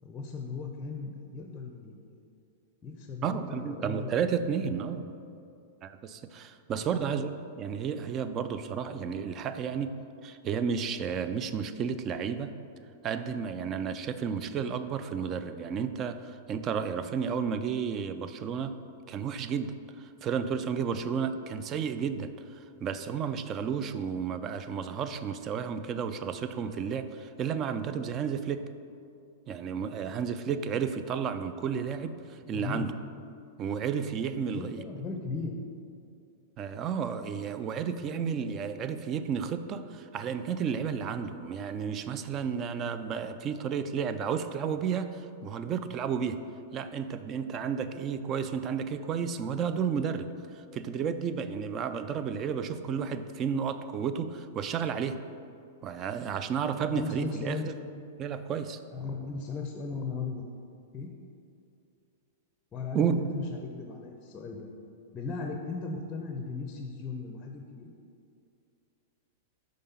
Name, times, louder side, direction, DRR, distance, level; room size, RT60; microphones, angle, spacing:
voice 1, 0.0-2.0 2.8-4.7 6.8-7.0 32.5-32.9 34.4-35.6 56.9-57.7 58.9-60.4 60.9-61.1 62.7-64.7 65.1-67.9, left 4 dB, 25° left, 2 dB, 0.6 m, -37 dB
voice 2, 3.2-5.1 5.8-10.0 10.2-12.5 13.0-18.7 19.1-28.7 29.5-32.9 33.6-34.8 36.6-46.4 46.7-50.3 50.5-55.2 55.8-57.6 58.2-58.8 62.9-63.3, right 7 dB, 35° right, 10 dB, 0.3 m, -32 dB
5.5 x 3.8 x 5.6 m, 2.5 s
hypercardioid pair, 110°, 0 cm